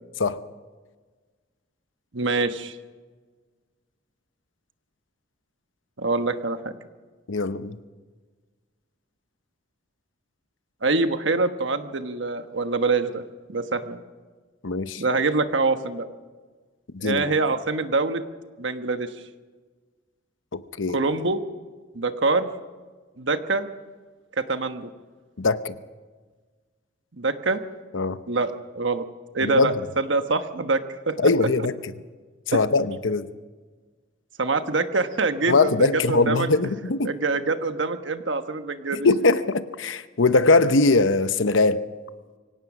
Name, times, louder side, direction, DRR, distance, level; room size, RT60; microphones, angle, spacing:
voice 1, 2.1-2.8 6.0-6.7 10.8-13.2 13.5-14.0 15.0-16.1 17.0-18.2 18.6-19.1 20.9-21.5 21.9-22.5 23.2-23.7 24.4-24.9 27.2-27.6 28.3-29.0 29.3-31.5 32.5-32.9 34.4-36.5 37.0-39.1, right 3 dB, 70° right, 8 dB, 1.3 m, -25 dB
voice 2, 7.3-7.8 14.6-15.0 16.9-17.3 20.5-21.0 25.4-25.7 27.9-28.2 29.4-29.7 31.2-31.7 32.5-33.3 35.5-37.1 39.0-41.8, left 3 dB, 85° left, 12 dB, 0.9 m, -21 dB
24.0 x 17.5 x 6.2 m, 1.4 s
head